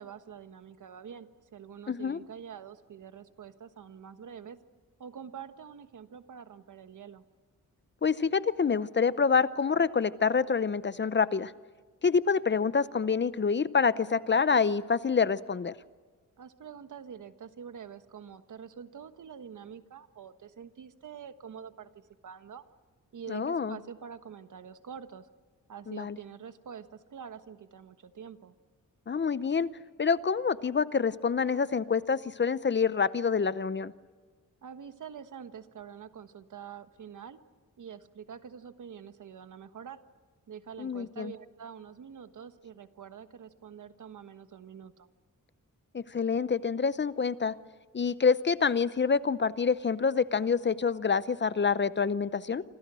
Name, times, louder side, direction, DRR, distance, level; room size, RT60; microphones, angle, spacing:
voice 1, 0.0-4.6 5.0-7.2 16.4-21.9 22.2-22.6 23.1-25.3 25.7-28.5 34.6-37.4 37.8-40.0 40.5-45.1, right 7 dB, 65° right, 10 dB, 1.4 m, -46 dB
voice 2, 1.9-2.2 8.0-11.5 12.0-15.7 23.3-23.8 25.9-26.2 29.1-29.7 30.0-33.9 40.8-41.3 45.9-47.5 47.9-52.6, left 5 dB, 35° left, 16 dB, 0.7 m, -27 dB
28.0 x 26.0 x 6.3 m, 1.4 s
wide cardioid pair, 110°, 32 cm